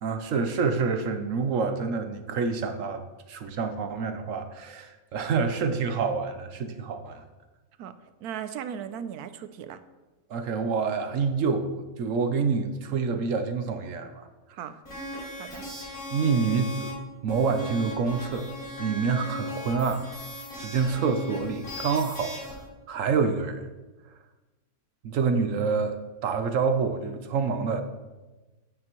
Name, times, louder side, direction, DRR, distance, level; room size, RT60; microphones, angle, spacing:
voice 1, 0.0-7.2 10.3-14.3 16.1-17.0 17.2-18.5 18.8-20.1 20.6-22.3 22.9-23.7 25.0-27.8, right 5 dB, 65° right, 8 dB, 1.0 m, -27 dB
voice 2, 8.2-9.8 14.5-14.8 15.4-15.6, right 8 dB, 85° right, 12 dB, 1.1 m, -37 dB
sound 1, 14.8-16.9 17.3-22.6, equal, 85° left, 4.0 m, -38 dB
9.4 x 9.3 x 3.0 m, 1.2 s
omnidirectional pair, 1.6 m